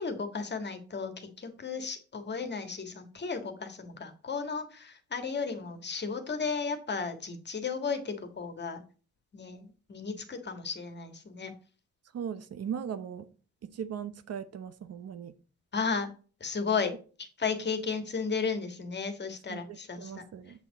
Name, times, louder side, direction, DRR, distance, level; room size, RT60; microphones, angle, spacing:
voice 1, 0.0-8.8 9.3-11.5 15.7-16.1 16.4-16.9 17.2-20.2, left 5 dB, 35° left, 7 dB, 1.7 m, -34 dB
voice 2, 12.1-13.3 13.6-15.3 19.5-20.6, right 8 dB, 55° right, 11 dB, 0.9 m, -38 dB
7.4 x 6.0 x 4.0 m, 0.37 s
cardioid pair, 90°, 30 cm